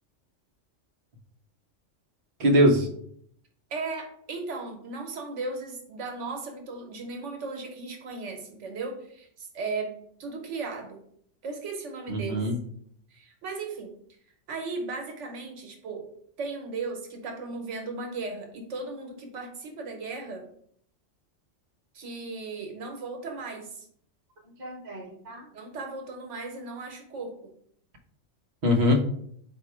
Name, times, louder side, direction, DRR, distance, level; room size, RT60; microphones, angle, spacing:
voice 1, 2.4-2.8 12.1-12.5 24.6-25.4 28.6-29.0, equal, 45° right, 0 dB, 0.8 m, -22 dB
voice 2, 3.7-9.9 10.2-11.0 11.4-12.5 13.1-13.9 14.5-16.0 16.4-20.5 21.9-23.9 25.5-27.5, right 3 dB, 75° right, 3 dB, 1.2 m, -36 dB
4.3 x 2.6 x 4.6 m, 0.66 s
omnidirectional pair, 1.3 m